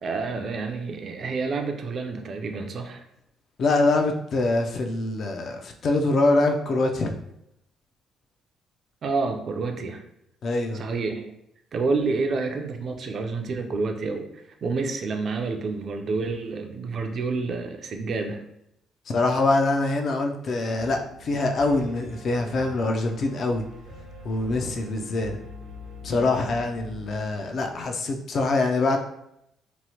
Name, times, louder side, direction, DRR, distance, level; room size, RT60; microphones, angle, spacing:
voice 1, 0.0-3.0 9.0-10.0 10.7-11.3 11.7-18.4, right 4 dB, 45° right, 4 dB, 0.4 m, -29 dB
voice 2, 3.6-7.2 10.4-10.8 19.1-23.6 24.2-25.4 26.0-29.0, left 2 dB, 50° left, 4 dB, 0.4 m, -24 dB
Piano, 20.8-27.8, equal, 90° right, 0.6 m, -43 dB
2.9 x 2.0 x 2.8 m, 0.79 s
cardioid pair, 140°, 0 cm